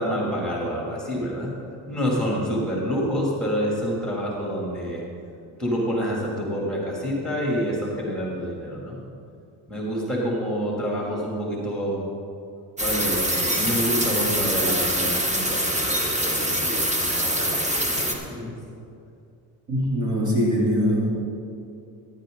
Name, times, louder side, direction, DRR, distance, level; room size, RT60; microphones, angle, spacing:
voice 1, 0.0-1.6 1.9-5.0 5.6-9.0 9.7-12.0 12.8-18.5, equal, ahead, -4 dB, 3.1 m, -28 dB
sound 1, 12.8-18.1, equal, 15° right, 1.6 m, -24 dB
voice 2, 19.7-21.1, equal, 40° right, -4 dB, 3.4 m, -22 dB
14.5 x 10.5 x 4.0 m, 2.6 s
supercardioid pair, 100°, 45 cm